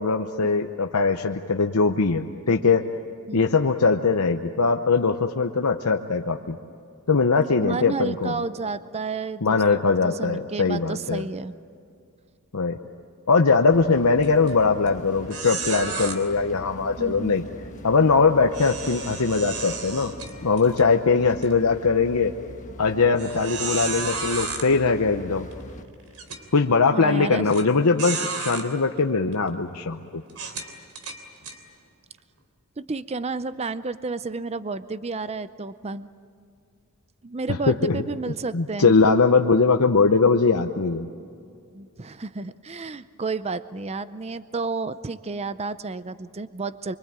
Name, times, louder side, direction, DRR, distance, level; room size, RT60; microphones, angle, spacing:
voice 1, 0.0-2.8 3.3-6.6 7.1-8.4 9.4-11.2 12.5-12.8 13.3-17.4 17.8-20.1 20.4-22.3 22.8-25.5 26.5-30.2 37.7-38.0 38.5-41.1, left 4 dB, 90° left, 4 dB, 0.9 m, -21 dB
voice 2, 7.6-9.6 10.0-11.6 17.0-17.4 26.9-27.5 32.8-36.1 37.2-38.9 41.7-47.0, right 3 dB, 30° right, 14 dB, 0.6 m, -31 dB
sound 1, 13.7-25.8, left 1 dB, 35° left, 1.5 m, -43 dB
sound 2, 14.2-14.5 14.9-15.0 15.3-16.2 18.5-20.8 21.3-21.5 22.1-22.2 23.2-24.7 25.5-25.6 26.1-26.4 27.5-27.6 28.0-28.7 29.3-29.5 30.3-31.6, right 4 dB, 80° right, 3.1 m, -32 dB
24.5 x 24.5 x 8.8 m, 2.5 s
head